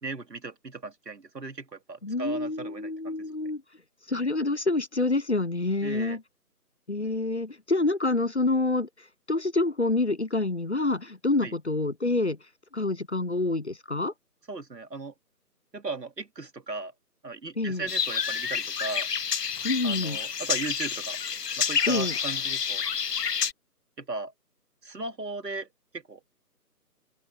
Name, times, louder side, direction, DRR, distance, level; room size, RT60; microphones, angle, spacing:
voice 1, 0.0-3.2 5.8-6.2 11.4-11.5 14.5-15.1 15.7-16.9 17.2-19.1 19.8-21.2 21.6-22.8 24.0-24.3 24.8-25.7 25.9-26.2, right 3 dB, 90° right, 2.8 m, -37 dB
voice 2, 2.0-3.6 4.1-6.2 6.9-8.9 9.3-12.4 12.7-14.1 17.6-17.9 19.6-20.2 21.9-22.1, left 2 dB, 45° left, 0.6 m, -27 dB
sound 1, 17.9-23.5, left 7 dB, 75° left, 0.9 m, -29 dB
open air
figure-of-eight pair, 175°, 48 cm